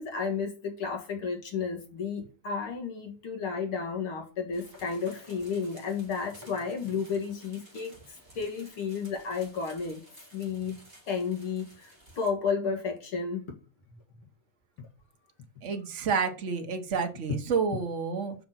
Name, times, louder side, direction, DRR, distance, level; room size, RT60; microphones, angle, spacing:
voice 1, 0.0-10.0 10.3-10.8 11.1-13.5, left 5 dB, 50° left, 2.3 m, -32 dB
sound 1, 4.5-12.3, equal, 5° right, 3.9 m, -54 dB
voice 2, 15.6-18.3, right 5 dB, 65° right, 0.7 m, -29 dB
6.7 x 5.9 x 5.9 m
omnidirectional pair, 3.4 m